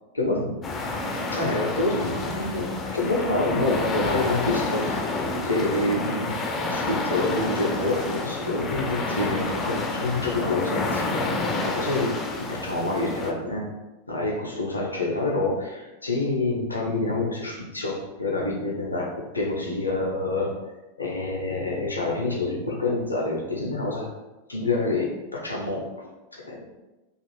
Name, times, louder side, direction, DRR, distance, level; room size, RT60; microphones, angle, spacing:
voice 1, 0.1-0.6 1.1-5.0 5.4-6.4 6.7-13.7 14.1-20.5 21.0-24.1 24.5-26.7, left 2 dB, 80° left, -2 dB, 0.6 m, -27 dB
sound 1, 0.6-13.3, left 3 dB, 20° left, 0.4 m, -29 dB
2.5 x 2.4 x 3.1 m, 1.1 s
figure-of-eight pair, 90°, 0 cm